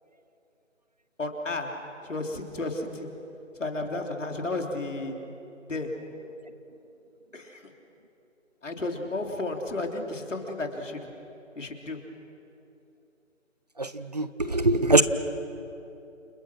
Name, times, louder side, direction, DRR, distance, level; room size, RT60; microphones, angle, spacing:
voice 1, 1.2-1.7 2.0-3.1 3.6-5.1 5.7-5.9 7.3-7.6 8.6-11.1 11.6-12.0, left 2 dB, 70° left, 3 dB, 3.6 m, -32 dB
voice 2, 13.8-15.0, right 2 dB, 30° right, 12 dB, 0.7 m, -22 dB
29.5 x 25.0 x 6.2 m, 2.9 s
figure-of-eight pair, 165°, 39 cm